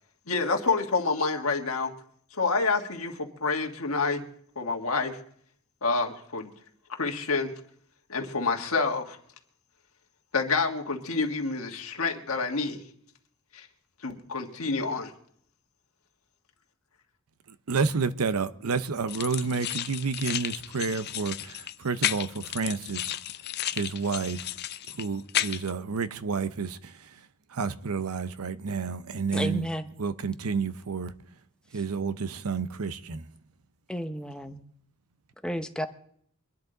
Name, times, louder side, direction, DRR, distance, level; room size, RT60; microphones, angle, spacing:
voice 1, 0.3-1.9 2.3-4.2 4.5-5.2 5.8-6.5 6.9-7.5 8.1-9.2 10.3-12.8 13.5-13.7 14.0-15.1, left 4 dB, 75° left, 1.6 m, -28 dB
voice 2, 17.5-23.1 23.7-24.5 24.9-29.7 30.0-31.1 31.7-33.3, right 5 dB, 90° right, 0.7 m, -30 dB
sound 1, 19.1-25.7, left 12 dB, 50° left, 0.4 m, -33 dB
voice 3, 29.3-29.9 33.9-34.6 35.4-35.9, equal, 5° left, 0.8 m, -32 dB
23.5 x 10.5 x 3.9 m
head